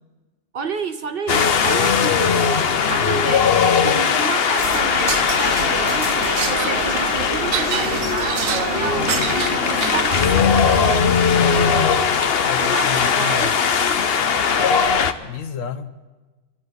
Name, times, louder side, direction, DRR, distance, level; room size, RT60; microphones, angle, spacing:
voice 1, 0.5-2.5 2.9-3.5 3.8-11.1 12.6-13.5, right 5 dB, 55° right, 9 dB, 0.7 m, -30 dB
Wind, 1.3-15.1, left 6 dB, 55° left, 0.9 m, -19 dB
sound 1, 4.6-10.4, right 6 dB, 85° right, 1.4 m, -27 dB
voice 2, 11.4-12.0 12.5-14.1 15.2-15.9, left 6 dB, 75° left, 10 dB, 1.3 m, -32 dB
27.0 x 13.0 x 4.0 m, 1.2 s
omnidirectional pair, 1.4 m